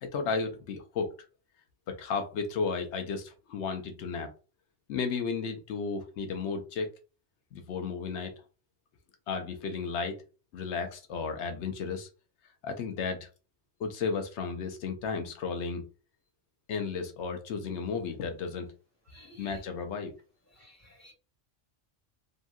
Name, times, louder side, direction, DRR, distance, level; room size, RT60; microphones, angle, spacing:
voice 1, 0.0-1.1 1.9-4.3 4.9-6.9 7.5-8.3 9.3-10.2 10.5-12.1 12.6-13.3 13.8-15.9 16.7-18.7 19.2-20.1, left 5 dB, 85° left, 0.9 m, -33 dB
voice 2, 19.1-19.5 20.6-21.1, equal, 15° left, 1.5 m, -55 dB
2.8 x 2.6 x 2.3 m
omnidirectional pair, 1.1 m